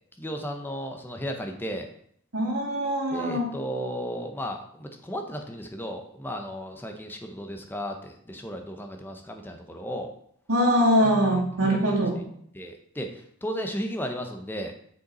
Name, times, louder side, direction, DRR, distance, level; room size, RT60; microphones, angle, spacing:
voice 1, 0.2-1.9 3.1-10.1 11.7-11.8 12.5-14.7, equal, 10° left, 4 dB, 0.7 m, -34 dB
voice 2, 2.3-3.5 10.5-12.2, equal, 80° right, -2 dB, 2.2 m, -23 dB
6.6 x 5.3 x 4.2 m, 0.68 s
head